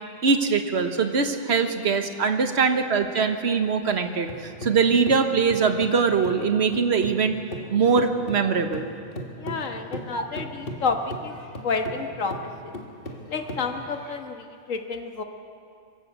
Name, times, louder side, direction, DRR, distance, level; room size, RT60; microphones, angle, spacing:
voice 1, 0.2-7.4 7.7-8.9 10.1-10.3, right 5 dB, 55° right, 7 dB, 1.5 m, -22 dB
sound 1, 3.8-7.2 7.5-14.2, equal, 45° left, 2.1 m, -38 dB
voice 2, 9.3-12.7 13.3-15.2, left 4 dB, 75° left, 5 dB, 1.8 m, -30 dB
24.5 x 13.5 x 8.1 m, 2.4 s
omnidirectional pair, 1.3 m